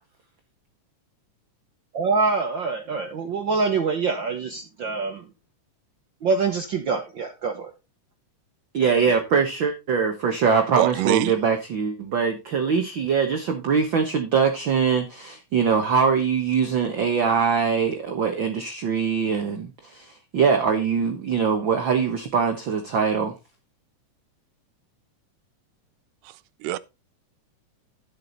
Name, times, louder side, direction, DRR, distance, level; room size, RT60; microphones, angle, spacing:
voice 1, 1.9-5.2 6.2-7.7, right 4 dB, 70° right, 1.1 m, -25 dB
voice 2, 8.7-23.3, right 6 dB, 55° right, 1.4 m, -22 dB
voice 3, 10.8-11.3 26.2-26.8, right 16 dB, 90° right, 2.3 m, -25 dB
12.0 x 7.6 x 4.0 m
omnidirectional pair, 3.7 m